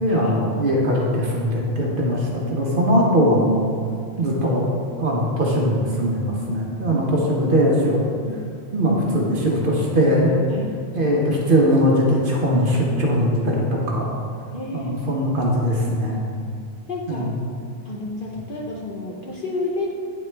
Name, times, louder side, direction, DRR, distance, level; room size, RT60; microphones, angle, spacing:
voice 1, 0.0-3.7 4.2-4.6 5.0-8.0 8.7-10.4 10.9-14.1 14.7-16.2 17.1-17.4, equal, 50° right, -2 dB, 1.0 m, -20 dB
voice 2, 14.5-15.3 16.9-17.3 17.9-19.9, left 2 dB, 50° left, -2 dB, 0.8 m, -30 dB
8.7 x 4.2 x 3.3 m, 2.3 s
omnidirectional pair, 1.3 m